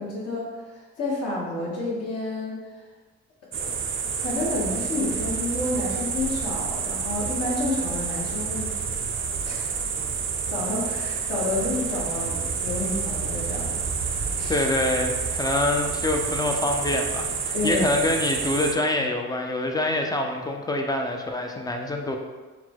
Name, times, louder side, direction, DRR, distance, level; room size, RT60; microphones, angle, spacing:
voice 1, 0.0-2.6 3.6-3.7 4.1-8.7 9.4-9.7 10.5-13.8 14.0-14.6 17.5-17.8, left 2 dB, 55° left, -7 dB, 1.5 m, -30 dB
sound 1, 3.5-18.7, right 6 dB, 40° right, 0.5 m, -29 dB
voice 2, 14.5-22.2, left 2 dB, 15° left, 2 dB, 0.5 m, -25 dB
4.1 x 2.2 x 4.4 m, 1.3 s
cardioid pair, 90°, 30 cm